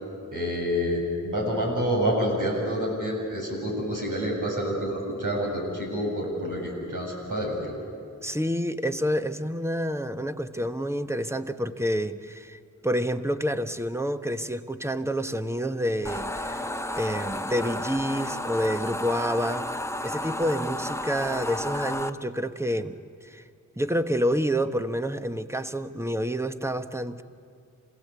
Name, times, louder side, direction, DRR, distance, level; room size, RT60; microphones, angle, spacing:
voice 1, 0.3-7.7, equal, 70° right, -1 dB, 7.8 m, -28 dB
voice 2, 8.2-16.6 17.0-19.7 20.0-23.4 23.8-27.2, equal, 10° right, 10 dB, 1.2 m, -28 dB
sound 1, 16.0-22.1, left 1 dB, 10° left, 0.9 m, -32 dB
27.5 x 17.0 x 8.4 m, 2.4 s
cardioid pair, 50°, 33 cm